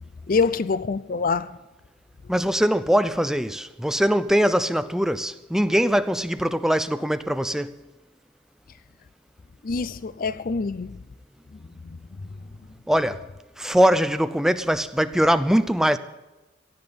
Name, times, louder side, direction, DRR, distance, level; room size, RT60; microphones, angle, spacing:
voice 1, 0.3-1.5 9.6-11.0 11.5-12.0, left 4 dB, 45° left, 0.5 m, -26 dB
voice 2, 2.3-7.8 12.9-13.3 13.6-16.0, equal, 5° right, 0.5 m, -22 dB
16.0 x 8.9 x 9.6 m
head